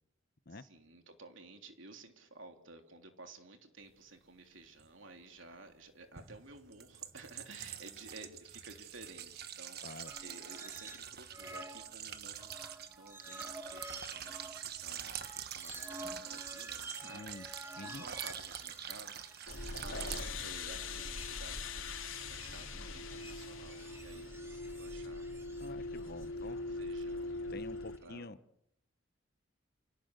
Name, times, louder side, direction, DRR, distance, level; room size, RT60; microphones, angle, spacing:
voice 1, 0.5-12.5 12.8-25.2 26.0-27.3 28.0-28.3, right 3 dB, 70° right, 3.4 m, -54 dB
sound 1, 4.8-4.9 6.2-20.2, right 9 dB, 50° right, 1.5 m, -45 dB
voice 2, 9.8-10.1 17.1-17.5 17.7-18.0 25.6-26.6 27.5-28.4, left 2 dB, 50° left, 1.0 m, -47 dB
sound 2, 10.1-11.1 11.3-28.0, right 1 dB, 10° right, 1.6 m, -51 dB
sound 3, 19.5-28.0, left 3 dB, 80° left, 3.2 m, -41 dB
28.5 x 18.0 x 8.2 m
head